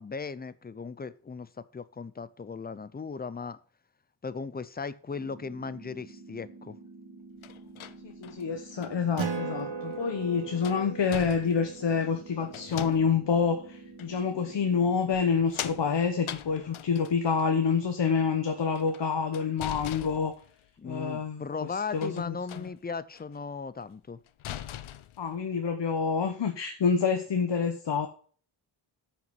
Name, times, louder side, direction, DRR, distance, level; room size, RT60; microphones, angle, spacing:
voice 1, 0.0-3.6 4.2-6.8 20.8-24.2, left 5 dB, 20° left, 0.4 m, -37 dB
sound 1, 5.1-15.1, right 3 dB, 25° right, 3.7 m, -49 dB
sound 2, 7.4-9.0 9.9-10.0 10.5-11.8 12.5-13.3 14.0-14.1 15.1-17.4 18.6-20.7 21.9-22.8 23.1-23.4 23.8-23.9 24.3-25.3, left 11 dB, 85° left, 0.7 m, -42 dB
voice 2, 8.0-20.3 20.8-21.4 21.9-22.6 25.2-28.1, left 6 dB, 60° left, 1.1 m, -27 dB
Acoustic guitar, 9.2-14.1, right 5 dB, 75° right, 1.9 m, -38 dB
9.3 x 6.0 x 5.3 m
wide cardioid pair, 170°, 48 cm